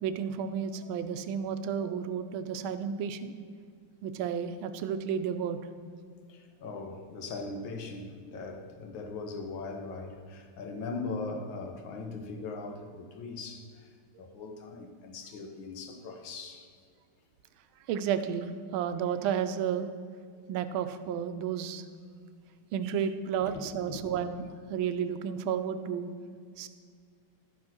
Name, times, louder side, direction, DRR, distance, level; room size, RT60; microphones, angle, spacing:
voice 1, 0.0-3.3 4.0-5.6 17.9-19.9 20.5-21.8 22.7-26.1 26.6-26.7, right 8 dB, 80° right, 10 dB, 1.4 m, -32 dB
voice 2, 6.3-13.9 14.2-16.7 23.4-23.5 23.9-24.0, left 3 dB, 70° left, 5 dB, 1.8 m, -40 dB
12.0 x 6.2 x 5.9 m, 2.1 s
omnidirectional pair, 2.3 m